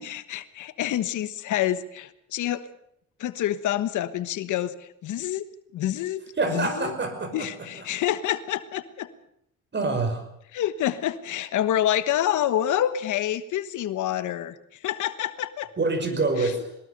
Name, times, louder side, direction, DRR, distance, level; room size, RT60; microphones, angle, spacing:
voice 1, 0.0-2.6 3.2-5.5 5.7-6.2 6.5-6.9 7.3-9.1 10.5-14.6 14.8-15.7 16.4-16.6, left 11 dB, 80° left, 12 dB, 1.4 m, -27 dB
voice 2, 6.4-7.5 9.7-10.2 15.8-16.8, right 3 dB, 35° right, 7 dB, 5.8 m, -26 dB
22.0 x 20.0 x 6.8 m, 0.74 s
cardioid pair, 90°, 30 cm